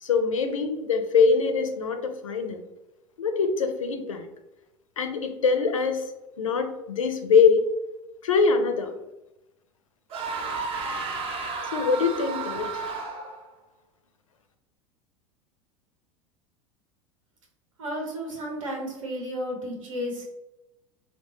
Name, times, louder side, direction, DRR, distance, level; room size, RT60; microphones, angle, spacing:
voice 1, 0.0-2.6 3.2-4.3 5.0-6.1 6.4-7.6 8.2-8.9 11.7-12.8, left 5 dB, 80° left, 7 dB, 0.4 m, -23 dB
sound 1, 10.1-13.5, right 4 dB, 35° right, 0.5 m, -32 dB
voice 2, 17.8-20.2, equal, 75° right, 0 dB, 0.9 m, -33 dB
2.8 x 2.1 x 2.9 m, 0.95 s
figure-of-eight pair, 80°, 17 cm